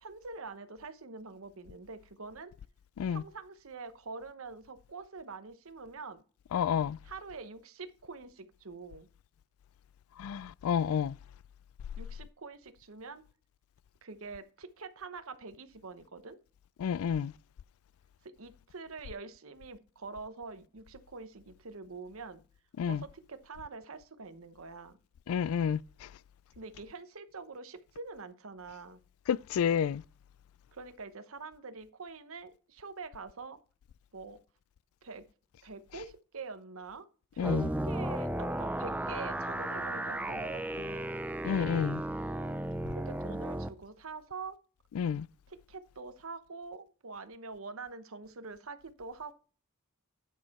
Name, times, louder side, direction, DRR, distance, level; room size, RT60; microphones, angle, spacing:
voice 1, 0.0-2.5 3.1-6.2 7.0-9.1 12.0-13.2 14.0-16.4 18.2-22.4 22.8-25.0 26.5-29.0 30.7-33.6 34.1-34.4 35.0-35.3 35.6-37.1 37.3-41.1 42.9-44.6 45.5-49.4, right 4 dB, 75° right, 0.9 m, -45 dB
voice 2, 6.5-7.0 10.2-11.2 16.8-17.3 22.8-23.0 25.3-26.1 29.3-30.0 37.4-37.7 41.4-42.0 45.0-45.3, left 7 dB, 75° left, 0.3 m, -30 dB
sound 1, 37.4-43.7, right 1 dB, 5° right, 0.4 m, -34 dB
9.3 x 6.5 x 4.1 m
head